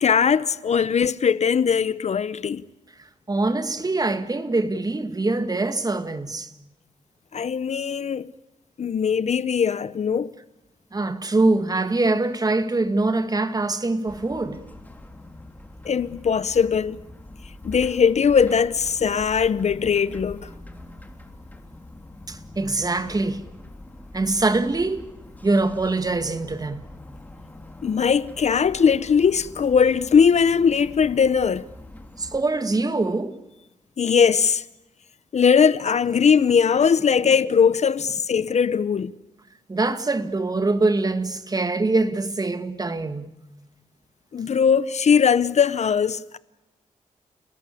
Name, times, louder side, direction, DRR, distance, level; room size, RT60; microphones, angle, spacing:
voice 1, 0.0-2.6 7.3-8.3 8.8-10.3 15.8-17.0 17.6-20.4 27.8-31.7 34.0-34.6 35.3-39.1 44.3-46.4, left 6 dB, 55° left, 0.8 m, -20 dB
voice 2, 3.3-6.5 10.9-14.6 22.3-23.5 24.1-25.1 25.4-26.8 32.2-33.4 39.7-43.3, right 2 dB, 30° right, 2.0 m, -23 dB
sound 1, 14.1-32.4, left 1 dB, 10° left, 3.2 m, -43 dB
30.0 x 19.5 x 8.4 m
cardioid pair, 90°, 14 cm